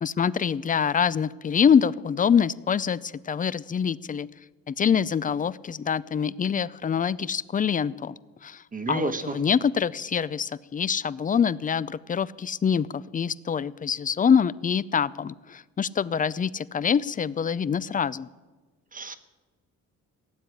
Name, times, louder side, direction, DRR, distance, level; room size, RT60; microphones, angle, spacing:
voice 1, 0.0-4.3 4.7-18.3, left 7 dB, 25° left, 19 dB, 0.5 m, -25 dB
voice 2, 8.7-9.4 18.9-19.2, right 3 dB, 25° right, 10 dB, 1.2 m, -30 dB
17.0 x 7.7 x 9.7 m, 1.3 s
cardioid pair, 90°, 30 cm